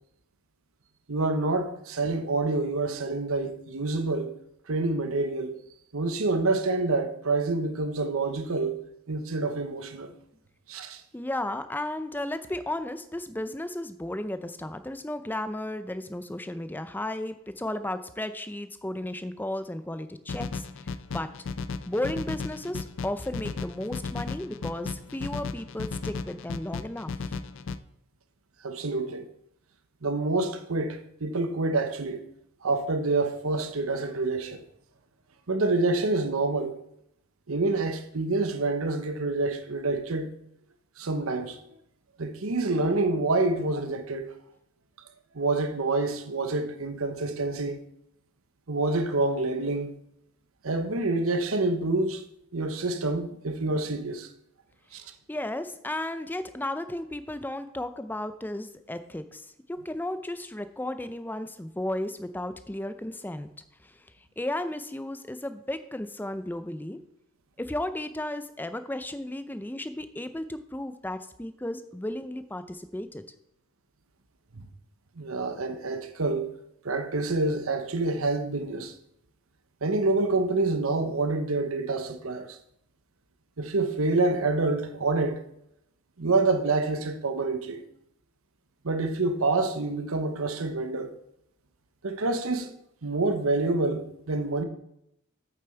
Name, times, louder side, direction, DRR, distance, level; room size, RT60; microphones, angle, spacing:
voice 1, 1.1-4.3 4.7-5.5 5.9-8.8 9.1-10.1 10.7-11.0 28.6-29.3 30.0-32.2 32.6-34.6 35.5-36.7 37.5-40.3 41.0-41.6 42.2-44.3 45.3-47.8 48.7-49.9 50.6-52.2 52.5-54.3 54.9-55.0 74.5-74.7 75.2-76.5 76.8-78.9 79.8-82.6 83.6-85.4 86.2-87.8 88.8-91.1 92.0-92.7 93.0-94.6, right 3 dB, 90° right, 1.0 m, -27 dB
voice 2, 11.1-21.3 21.9-27.4 55.3-63.5 63.8-64.1 64.4-67.0 67.6-73.2, left 1 dB, 10° left, 0.5 m, -34 dB
sound 1, 20.3-27.8, left 4 dB, 65° left, 0.4 m, -35 dB
8.5 x 7.0 x 4.5 m
head